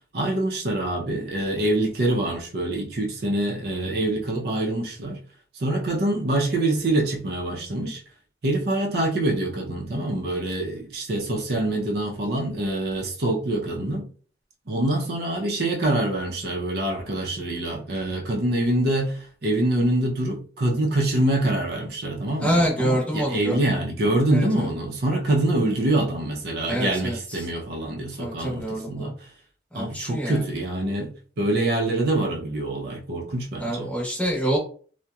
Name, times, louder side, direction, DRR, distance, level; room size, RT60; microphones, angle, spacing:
voice 1, 0.1-5.2 5.5-8.0 8.4-14.1 14.7-29.1 29.7-33.9, right 1 dB, 60° right, 0.6 m, -25 dB
voice 2, 22.4-23.6 24.3-24.7 26.7-27.5 28.2-29.1 29.7-30.4 33.6-34.6, equal, 5° left, 0.8 m, -26 dB
2.7 x 2.1 x 2.3 m
head